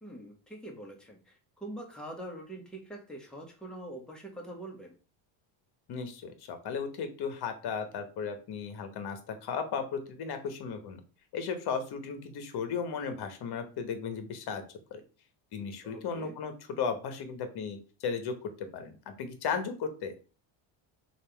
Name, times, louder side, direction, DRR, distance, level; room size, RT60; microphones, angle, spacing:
voice 1, 0.0-4.9 15.8-16.3, right 1 dB, ahead, -1 dB, 1.1 m, -44 dB
voice 2, 5.9-11.0 11.3-14.6 14.9-15.0 15.5-18.3 18.7-20.1, left 6 dB, 50° left, 8 dB, 1.0 m, -35 dB
3.3 x 2.6 x 4.4 m, 0.36 s
cardioid pair, 105°, 50 cm